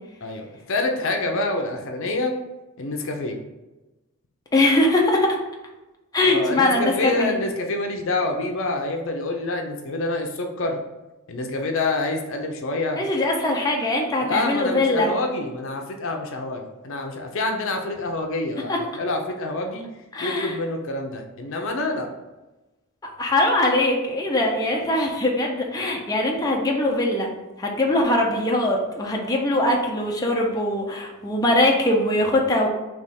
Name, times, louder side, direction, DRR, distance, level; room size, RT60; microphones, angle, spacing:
voice 1, 0.2-2.3 2.8-3.4 6.2-10.8 11.3-13.0 14.2-19.8 20.2-22.1, left 2 dB, 65° left, 3 dB, 0.6 m, -27 dB
voice 2, 4.5-5.4 6.1-7.4 13.0-15.1 18.7-18.8 20.1-20.5 23.2-27.3 27.6-32.7, left 1 dB, 20° left, -1 dB, 0.6 m, -21 dB
3.4 x 3.0 x 4.2 m, 1.1 s
head